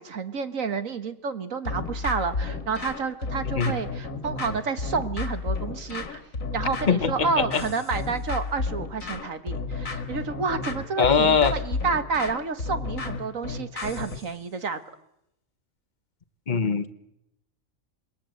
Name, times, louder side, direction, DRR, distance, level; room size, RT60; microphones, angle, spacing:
voice 1, 0.0-6.2 6.5-14.8, right 5 dB, 90° right, 10 dB, 2.0 m, -30 dB
sound 1, 1.7-14.3, left 3 dB, 90° left, 2.5 m, -32 dB
voice 2, 6.9-7.6 11.0-11.6 16.5-16.9, left 6 dB, 40° left, 13 dB, 1.2 m, -22 dB
27.0 x 21.5 x 7.9 m, 0.81 s
omnidirectional pair, 1.3 m